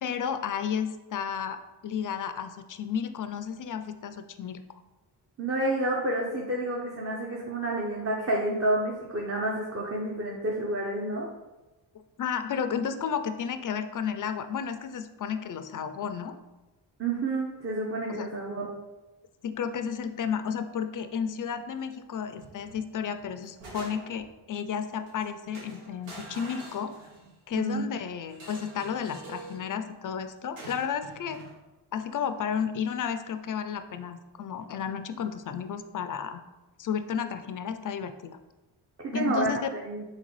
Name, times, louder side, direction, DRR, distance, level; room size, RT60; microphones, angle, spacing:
voice 1, 0.0-4.6 12.2-16.4 18.1-18.3 19.4-26.9 27.5-31.4 31.9-36.4 36.8-38.3 39.1-39.6, left 7 dB, 45° left, 9 dB, 0.4 m, -32 dB
voice 2, 5.4-11.3 17.0-18.7 27.5-27.9 39.0-40.0, right 1 dB, 30° right, -2 dB, 0.8 m, -29 dB
sound 1, 22.4-22.8 23.2-24.3 25.1-25.2 25.5-27.4 28.3-29.6 30.6-31.5, right 2 dB, 80° right, 1.2 m, -45 dB
3.9 x 3.7 x 3.2 m, 1.1 s
supercardioid pair, 50°, 49 cm